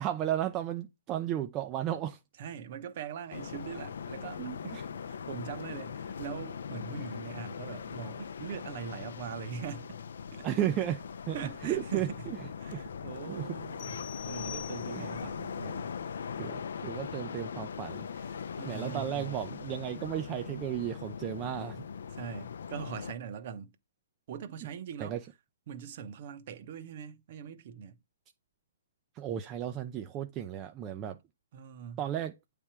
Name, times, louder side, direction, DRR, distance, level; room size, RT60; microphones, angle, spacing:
voice 1, 0.0-2.2 4.4-4.8 10.4-11.4 11.6-12.1 12.7-12.8 13.3-13.5 14.9-15.2 16.4-18.1 18.6-21.9 25.0-25.2 29.1-31.2 32.0-32.3, right 11 dB, 20° right, 0.4 m, -34 dB
voice 2, 2.4-4.8 5.1-10.0 10.3-10.5 11.3-12.3 12.6-15.9 18.1-19.4 22.1-23.7 24.3-25.2 25.7-28.0 31.5-32.1, right 8 dB, 40° right, 0.8 m, -42 dB
sound 1, 3.3-23.1, left 6 dB, 70° left, 0.5 m, -40 dB
sound 2, 13.8-15.3, left 9 dB, 25° left, 0.7 m, -45 dB
8.5 x 3.4 x 4.4 m
hypercardioid pair, 160°, 0 cm